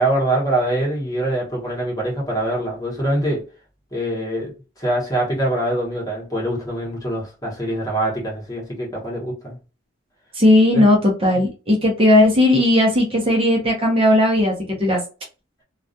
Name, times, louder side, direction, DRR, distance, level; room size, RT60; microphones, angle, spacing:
voice 1, 0.0-3.4 3.9-4.5 4.8-9.6 10.7-10.8, right 1 dB, 20° left, 1.0 m, -23 dB
voice 2, 10.3-15.0, left 1 dB, 30° right, 0.6 m, -16 dB
2.3 x 2.3 x 2.6 m
head